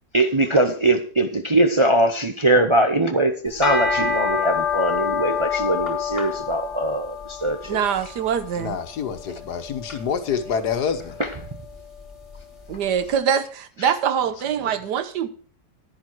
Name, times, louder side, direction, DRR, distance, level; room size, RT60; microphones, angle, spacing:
voice 1, 0.1-7.8 11.2-11.3 13.8-13.9, right 1 dB, 35° right, 0.4 m, -21 dB
sound 1, 3.5-12.8, left 6 dB, 20° left, 2.6 m, -28 dB
voice 2, 7.7-8.7 12.7-15.3, right 8 dB, 85° right, 1.5 m, -24 dB
voice 3, 8.5-11.2 14.6-14.8, left 6 dB, 75° left, 1.7 m, -27 dB
11.0 x 10.5 x 4.6 m
omnidirectional pair, 1.7 m